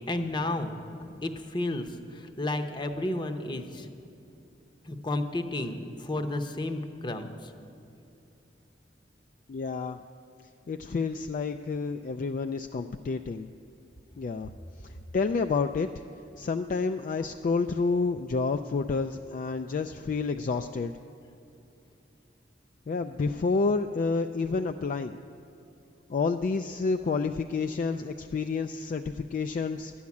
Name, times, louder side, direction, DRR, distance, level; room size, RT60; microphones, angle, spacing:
voice 1, 0.1-0.8 1.2-3.9 4.8-7.5, left 1 dB, 25° left, 6 dB, 0.7 m, -32 dB
voice 2, 9.5-10.0 10.7-13.5 14.2-14.5 15.1-15.9 16.4-20.9 22.9-25.2 26.1-29.9, left 4 dB, 45° left, 7 dB, 0.3 m, -29 dB
11.5 x 7.2 x 9.5 m, 2.8 s
head